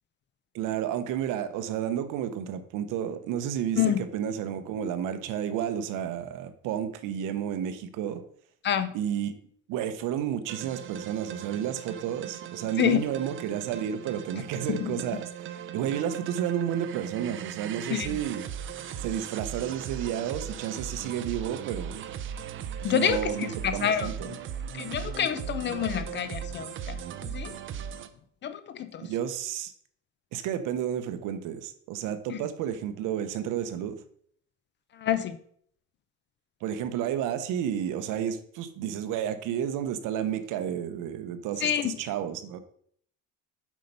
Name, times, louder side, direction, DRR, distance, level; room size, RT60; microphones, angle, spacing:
voice 1, 0.5-8.2 8.9-9.4 9.7-18.5 19.0-22.1 22.8-24.3 29.0-29.7 30.3-34.0 36.6-42.6, right 9 dB, 70° right, 11 dB, 0.9 m, -31 dB
sound 1, 10.5-28.1, right 8 dB, 40° right, 0.6 m, -38 dB
voice 2, 22.8-23.2 23.6-24.1 24.7-27.6 28.4-29.1 32.3-32.4 35.0-35.4 41.6-41.9, left 10 dB, 35° left, 11 dB, 0.5 m, -27 dB
7.5 x 5.4 x 5.4 m, 0.63 s
cardioid pair, 155°, 33 cm